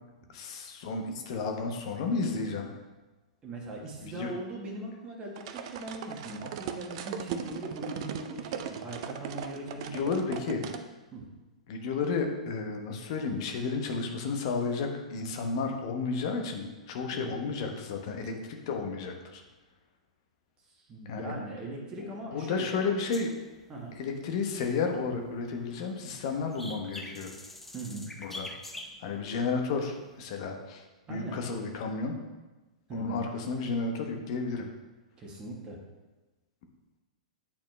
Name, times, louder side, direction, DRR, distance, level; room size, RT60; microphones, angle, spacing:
voice 1, 0.3-2.7 4.0-4.3 9.8-10.6 11.7-19.4 21.0-21.4 22.0-23.3 24.0-27.3 28.2-28.5 29.0-32.2 32.9-34.7, left 4 dB, 50° left, 3 dB, 1.0 m, -32 dB
voice 2, 3.4-10.2 10.5-10.6 11.1-11.2 17.1-17.4 20.8-22.8 23.7-24.0 27.7-28.1 31.1-31.4 32.9-33.2 35.2-35.8, right 2 dB, 25° right, -2 dB, 1.4 m, -40 dB
sound 1, 5.4-10.8, right 8 dB, 50° right, 0.5 m, -38 dB
sound 2, 23.1-25.3 25.7-29.4 29.9-30.1, left 1 dB, 5° left, 0.6 m, -45 dB
8.6 x 4.2 x 3.2 m, 1.1 s
figure-of-eight pair, 105°, 4 cm